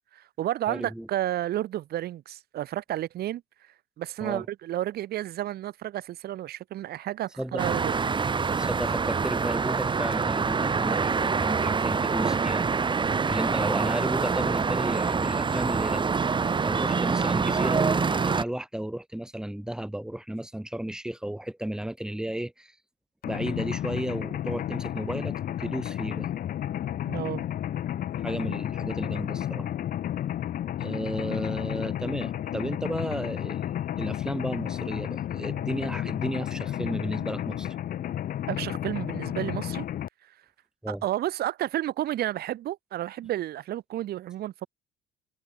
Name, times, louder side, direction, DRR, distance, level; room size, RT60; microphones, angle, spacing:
voice 1, 0.1-3.4 4.0-7.9 27.0-27.5 38.5-39.9 40.9-44.7, right 13 dB, 65° right, 4.4 m, -31 dB
voice 2, 0.7-1.1 4.2-4.4 7.4-7.7 8.6-12.6 13.3-16.2 16.6-22.7 23.2-26.3 28.2-29.7 30.8-37.7 40.8-41.0, right 1 dB, 5° right, 4.9 m, -33 dB
sound 1, 7.6-18.4, right 5 dB, 30° right, 4.9 m, -26 dB
Mechanisms, 23.2-40.1, left 11 dB, 60° left, 2.3 m, -32 dB
cardioid pair, 110°, 17 cm